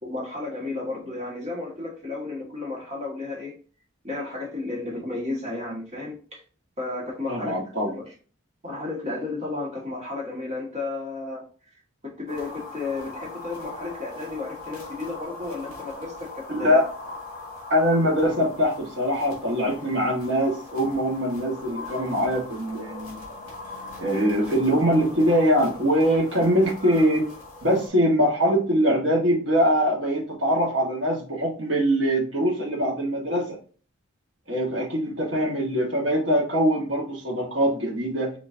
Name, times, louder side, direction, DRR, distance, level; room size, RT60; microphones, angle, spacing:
voice 1, 0.0-3.6 4.0-6.4 6.8-7.6 7.9-8.1 8.6-11.4 12.0-16.8, left 3 dB, 30° right, 1.7 m, -33 dB
voice 2, 7.3-7.9 16.5-16.9 17.7-23.2 24.0-27.3 27.6-33.6 34.5-38.3, equal, 60° right, 1.5 m, -23 dB
sound 1, 12.3-27.9, left 2 dB, 40° left, 2.6 m, -40 dB
6.3 x 3.0 x 2.7 m
head